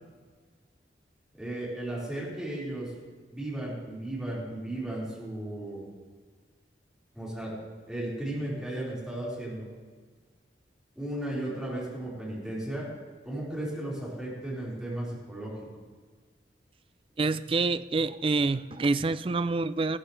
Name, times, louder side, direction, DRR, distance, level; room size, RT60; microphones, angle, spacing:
voice 1, 1.4-2.9 3.3-5.8 7.1-7.5 7.9-9.7 11.0-12.9 13.2-15.5, right 1 dB, 5° right, -9 dB, 4.7 m, -35 dB
voice 2, 17.2-20.0, right 3 dB, 30° right, 14 dB, 0.4 m, -27 dB
16.0 x 14.5 x 3.3 m, 1.5 s
head